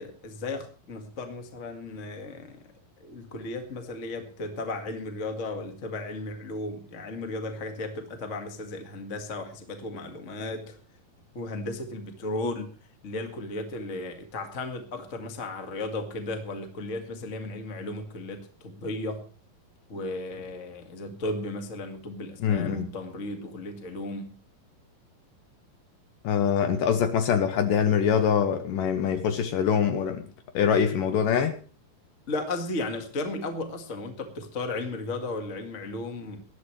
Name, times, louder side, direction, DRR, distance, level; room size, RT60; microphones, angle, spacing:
voice 1, 0.0-2.7 3.0-10.8 11.3-12.7 13.0-19.3 19.9-24.4 32.3-36.4, left 2 dB, 35° left, 1.3 m, -35 dB
voice 2, 22.4-22.9 26.2-30.2 30.5-31.5, left 7 dB, 70° left, 2.3 m, -24 dB
19.5 x 12.5 x 3.3 m
omnidirectional pair, 4.5 m